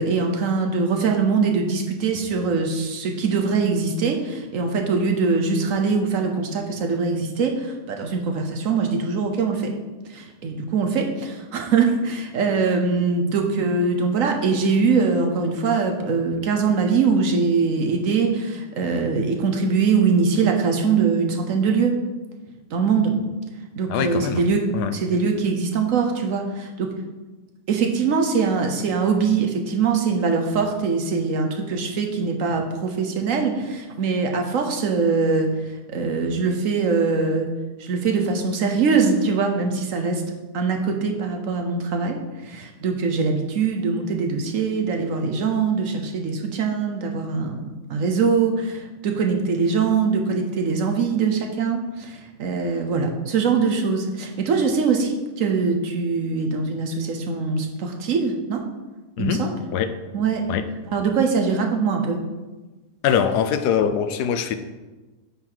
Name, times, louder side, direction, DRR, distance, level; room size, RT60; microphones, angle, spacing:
voice 1, 0.0-9.7 10.1-21.9 22.7-23.2 23.8-24.6 24.9-26.9 27.7-35.5 35.9-37.5 37.8-40.2 40.5-47.6 47.9-58.6 59.2-59.5 60.1-60.4 60.9-62.2, right 5 dB, 60° right, 3 dB, 1.1 m, -22 dB
voice 2, 23.9-24.4 24.7-24.9 59.2-59.4 59.7-59.9 60.5-60.6 63.0-64.6, left 8 dB, 90° left, 10 dB, 1.2 m, -22 dB
8.7 x 4.7 x 3.9 m, 1.2 s
omnidirectional pair, 1.7 m